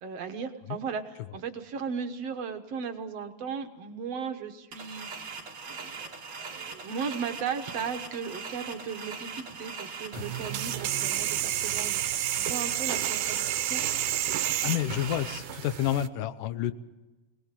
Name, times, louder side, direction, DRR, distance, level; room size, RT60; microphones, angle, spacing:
voice 1, 0.0-5.1 5.7-13.8, right 6 dB, 60° right, 6 dB, 2.2 m, -36 dB
sound 1, 4.7-15.4, right 5 dB, 40° right, 2.2 m, -41 dB
sound 2, 10.1-16.1, right 13 dB, 90° right, 2.4 m, -30 dB
voice 2, 14.6-16.7, left 12 dB, 90° left, 13 dB, 2.5 m, -29 dB
23.5 x 19.5 x 7.5 m, 1.1 s
omnidirectional pair, 3.6 m